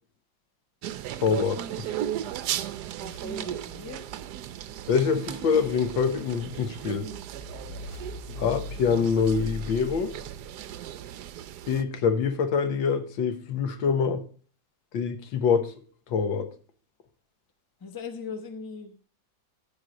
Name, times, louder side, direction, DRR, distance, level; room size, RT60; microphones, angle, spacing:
sound 1, 0.8-11.8, right 11 dB, 70° right, 1.1 m, -36 dB
voice 1, 1.2-1.9 4.9-7.1 8.4-10.1 11.7-14.2 14.9-15.7 16.1-16.5, left 6 dB, 85° left, 1.8 m, -25 dB
voice 2, 3.0-4.1 17.8-19.0, left 5 dB, 15° left, 0.7 m, -39 dB
sound 2, 6.9-10.9, left 3 dB, 55° left, 2.5 m, -41 dB
14.5 x 4.8 x 5.1 m
omnidirectional pair, 2.0 m